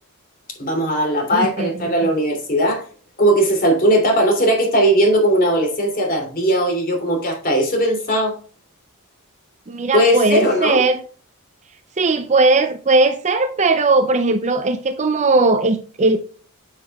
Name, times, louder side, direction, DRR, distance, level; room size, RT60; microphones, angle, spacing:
voice 1, 0.6-2.8 3.2-8.3 9.9-10.8, right 1 dB, 40° left, 2.9 m, -18 dB
voice 2, 1.3-1.7 9.7-11.0 12.0-16.2, right 3 dB, 30° right, 0.6 m, -18 dB
9.0 x 7.4 x 2.3 m
head